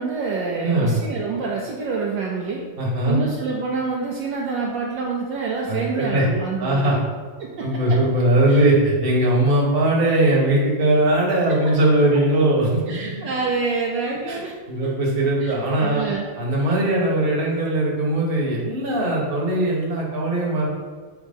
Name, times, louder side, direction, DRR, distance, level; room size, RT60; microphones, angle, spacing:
voice 1, 0.0-2.6 3.1-7.0 7.4-8.0 8.5-8.7 12.9-14.5 14.8-14.9 15.4-15.5 15.8-16.3, right 4 dB, 70° right, -2 dB, 1.2 m, -27 dB
voice 2, 0.6-1.0 2.8-3.2 5.7-6.3 6.6-7.0 7.6-13.1 14.3-14.4 14.7-16.0 16.4-20.7, right 1 dB, 30° right, -3 dB, 1.2 m, -20 dB
6.4 x 3.0 x 5.2 m, 1.5 s
omnidirectional pair, 2.3 m